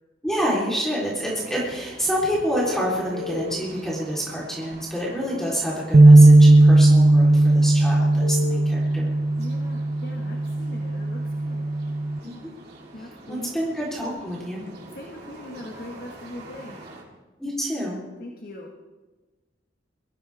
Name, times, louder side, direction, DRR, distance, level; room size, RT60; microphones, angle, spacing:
voice 1, 0.2-9.1 12.2-12.5 13.3-14.6 17.4-18.0, equal, 5° left, -6 dB, 3.7 m, -28 dB
sound 1, 1.3-17.0, right 1 dB, 60° right, 3.8 m, -46 dB
sound 2, 2.6-3.5 4.7-4.8 8.2-8.6, left 5 dB, 85° left, 1.6 m, -33 dB
sound 3, 5.9-12.2, right 2 dB, 40° right, 0.6 m, -16 dB
voice 2, 9.4-11.7 12.9-13.5 14.9-16.8 18.2-18.7, left 1 dB, 50° left, 1 dB, 1.7 m, -40 dB
23.0 x 14.0 x 3.6 m, 1.2 s
head